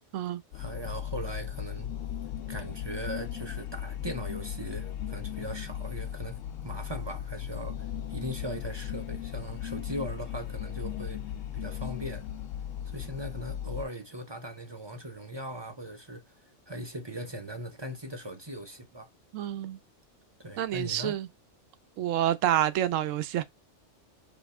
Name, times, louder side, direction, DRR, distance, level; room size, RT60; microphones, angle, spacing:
sound 1, 0.5-13.8, left 10 dB, 90° left, 1.0 m, -37 dB
voice 1, 0.5-1.9 2.5-12.3 12.9-16.2 16.7-19.1 20.4-21.2, right 1 dB, 30° right, 0.6 m, -39 dB
voice 2, 19.3-19.8 20.6-21.3 22.0-23.4, right 11 dB, 85° right, 0.9 m, -28 dB
5.4 x 2.8 x 3.5 m
omnidirectional pair, 1.3 m